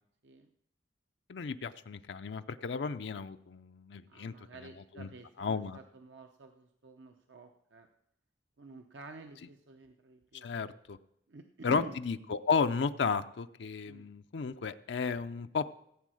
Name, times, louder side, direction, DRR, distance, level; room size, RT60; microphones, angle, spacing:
voice 1, 1.3-4.3 5.0-5.1 5.4-5.8 10.4-11.0 11.6-15.7, left 5 dB, 75° left, 9 dB, 0.5 m, -33 dB
voice 2, 4.1-7.9 8.6-10.5 11.3-12.0 13.8-14.1, right 3 dB, 85° right, 5 dB, 0.8 m, -50 dB
15.5 x 8.3 x 6.3 m, 0.75 s
head